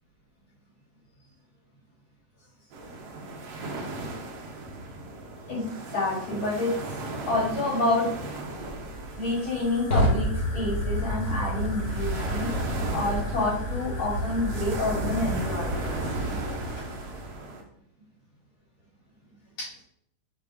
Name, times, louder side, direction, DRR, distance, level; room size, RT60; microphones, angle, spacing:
sound 1, 2.7-17.6, right 2 dB, 60° right, 1.8 m, -37 dB
voice 1, 5.5-7.0 7.3-8.1 9.1-12.5 12.9-15.9 19.6-19.7, left 2 dB, 50° left, -8 dB, 3.9 m, -28 dB
Fire, 8.3-17.3, equal, 30° left, 1.6 m, -30 dB
6.5 x 4.8 x 3.6 m, 0.72 s
omnidirectional pair, 3.6 m